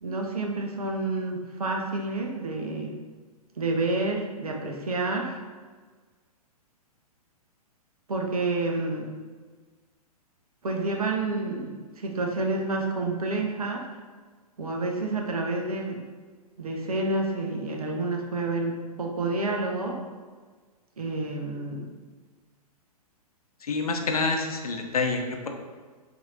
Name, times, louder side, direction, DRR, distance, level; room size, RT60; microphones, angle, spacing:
voice 1, 0.0-2.9 3.6-5.4 8.1-9.1 10.6-13.8 14.6-16.0 16.6-20.0 21.0-21.9, right 2 dB, 65° right, 2 dB, 0.7 m, -29 dB
voice 2, 23.6-25.5, left 3 dB, 65° left, 3 dB, 0.6 m, -27 dB
5.6 x 2.8 x 2.7 m, 1.4 s
figure-of-eight pair, 115°, 20 cm